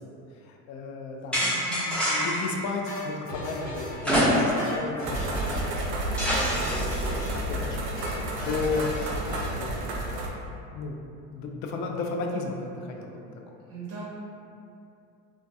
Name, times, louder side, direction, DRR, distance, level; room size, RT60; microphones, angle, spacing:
voice 1, 0.0-1.5 1.9-8.0 8.3-8.9 9.3-11.0 11.3-13.2 13.5-13.6, left 4 dB, 55° left, 2 dB, 0.4 m, -35 dB
sound 1, 1.3-2.5 4.0-4.8 5.1-5.2 6.2-7.0, equal, 5° left, 0.8 m, -25 dB
voice 2, 1.4-1.9 13.7-14.0, right 4 dB, 45° right, -9 dB, 1.0 m, -40 dB
sound 2, 2.9-4.1 4.4-5.8 6.1-6.4 6.7-7.5 7.8-8.1 8.4-9.7, left 1 dB, 85° left, 0.9 m, -37 dB
sound 3, 5.0-10.3, right 1 dB, 70° right, 0.5 m, -31 dB
2.2 x 2.2 x 2.6 m, 2.6 s
hypercardioid pair, 80°, 35 cm